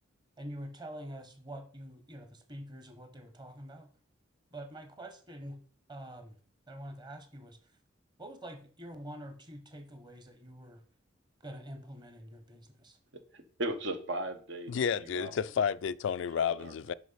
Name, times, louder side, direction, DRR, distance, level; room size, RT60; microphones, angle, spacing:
voice 1, 0.4-3.9 4.5-5.6 5.9-6.3 6.7-7.6 8.2-10.8 11.4-13.0, right 1 dB, 25° right, 1.1 m, -46 dB
voice 2, 13.3-15.3 16.4-16.7, right 1 dB, 70° right, 1.2 m, -37 dB
voice 3, 14.7-16.9, left 7 dB, 70° left, 0.3 m, -31 dB
6.2 x 5.7 x 5.5 m
head